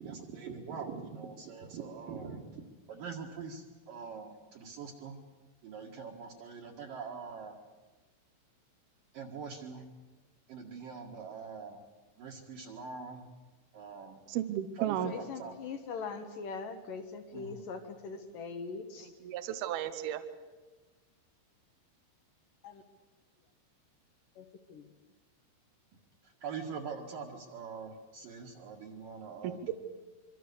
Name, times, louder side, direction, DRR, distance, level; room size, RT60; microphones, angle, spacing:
voice 1, 0.0-2.6 2.9-5.2 5.6-7.6 9.1-9.8 10.5-11.8 12.2-13.3 13.7-14.2 14.8-15.5 17.3-17.6 26.4-29.7, right 5 dB, 55° right, -3 dB, 3.0 m, -43 dB
voice 2, 14.3-15.1 19.2-20.2 29.4-29.7, right 11 dB, 70° right, 8 dB, 2.4 m, -34 dB
voice 3, 15.0-19.1 22.6-22.8 24.4-24.9, left 5 dB, 65° left, 7 dB, 2.4 m, -42 dB
26.0 x 24.5 x 7.0 m, 1.3 s
omnidirectional pair, 5.4 m